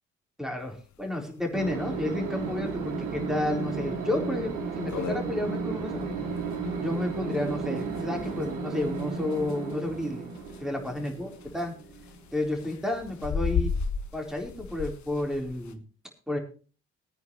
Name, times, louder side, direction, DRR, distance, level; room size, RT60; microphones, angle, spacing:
voice 1, 0.4-6.0 6.8-10.3 10.6-11.3 11.5-11.7 12.3-13.7 14.1-15.8 16.3-16.4, left 1 dB, ahead, 2 dB, 4.2 m, -31 dB
sound 1, 0.7-0.8 1.0-1.1 1.5-1.6 2.2-2.4 2.9-3.0 3.5-3.6 3.9-4.0 4.4-4.5 4.7-15.7, left 6 dB, 55° left, 1.5 m, -36 dB
sound 2, 1.5-12.6, right 4 dB, 65° right, 2.8 m, -34 dB
20.5 x 9.4 x 3.2 m, 0.37 s
figure-of-eight pair, 45°, 35 cm